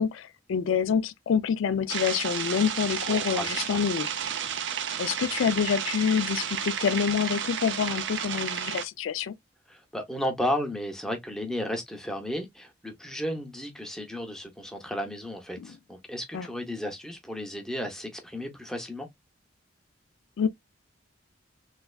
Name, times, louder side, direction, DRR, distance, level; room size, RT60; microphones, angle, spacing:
voice 1, 0.0-4.1 5.0-9.3 15.6-15.7 16.3-16.5 20.4-20.5, left 7 dB, 80° left, 0.4 m, -27 dB
sound 1, 1.9-8.8, right 8 dB, 65° right, 0.5 m, -32 dB
voice 2, 3.1-3.8 9.7-19.1, equal, 5° left, 0.7 m, -34 dB
3.4 x 3.2 x 2.2 m
head